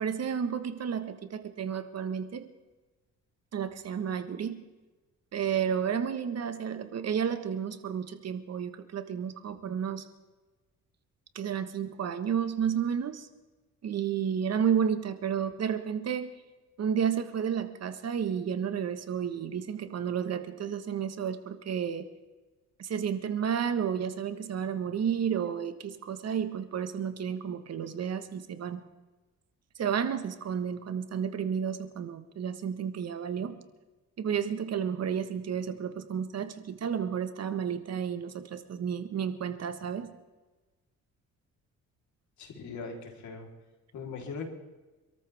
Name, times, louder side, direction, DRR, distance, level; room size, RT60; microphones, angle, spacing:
voice 1, 0.0-2.5 3.5-4.6 5.3-10.0 11.3-13.3 13.8-16.3 16.8-22.1 22.8-28.8 29.8-33.6 34.2-40.1, right 8 dB, 55° right, 9 dB, 1.5 m, -31 dB
voice 2, 42.4-43.5 43.9-44.5, left 4 dB, 70° left, 1 dB, 3.8 m, -40 dB
26.5 x 13.5 x 3.6 m, 1.2 s
cardioid pair, 90°, 30 cm